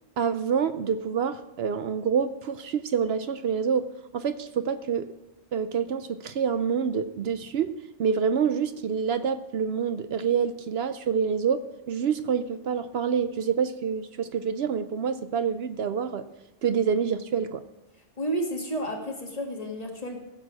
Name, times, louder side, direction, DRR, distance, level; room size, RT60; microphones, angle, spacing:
voice 1, 0.2-5.1 5.5-7.7 8.0-16.2 16.6-17.6, right 7 dB, 65° right, 11 dB, 0.8 m, -27 dB
voice 2, 18.2-20.2, right 1 dB, 35° left, 1 dB, 1.9 m, -31 dB
16.0 x 6.6 x 6.2 m, 1.0 s
omnidirectional pair, 1.2 m